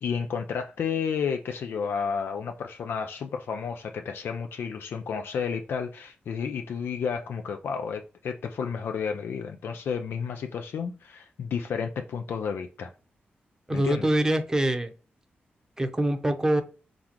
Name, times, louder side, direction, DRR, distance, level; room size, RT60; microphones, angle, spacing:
voice 1, 0.0-12.9 13.7-14.1, left 6 dB, 80° left, 0.4 m, -31 dB
voice 2, 13.7-14.9 15.8-16.6, right 1 dB, 15° right, 0.7 m, -24 dB
4.0 x 3.5 x 2.9 m
cardioid pair, 85°, 4 cm